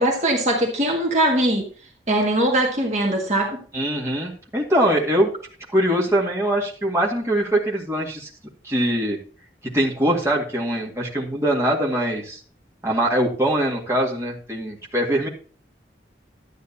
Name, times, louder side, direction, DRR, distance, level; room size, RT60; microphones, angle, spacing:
voice 1, 0.0-1.7 2.1-3.6, right 1 dB, 40° right, 0 dB, 1.6 m, -21 dB
voice 2, 3.7-5.3 5.7-8.3 8.6-9.2 9.6-12.4 12.8-15.3, right 1 dB, 15° right, -3 dB, 2.0 m, -22 dB
12.0 x 9.1 x 2.8 m, 0.41 s
head